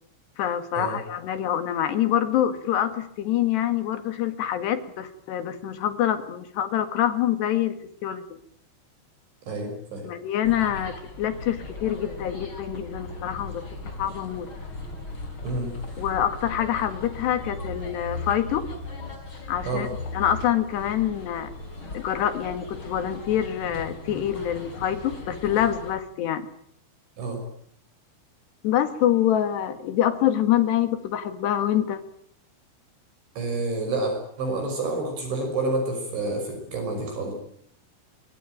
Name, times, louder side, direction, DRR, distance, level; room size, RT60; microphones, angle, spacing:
voice 1, 0.4-8.4 10.0-13.6 14.0-14.5 16.0-18.7 19.5-21.5 21.9-26.5 28.6-32.0, left 10 dB, 60° left, 10 dB, 3.7 m, -26 dB
voice 2, 9.5-10.1 15.4-15.7 19.6-19.9 27.2-27.4 33.4-37.3, right 2 dB, 65° right, 4 dB, 8.2 m, -29 dB
sound 1, 10.4-25.9, left 2 dB, 25° left, 5.6 m, -38 dB
26.0 x 23.0 x 9.2 m, 0.65 s
omnidirectional pair, 5.9 m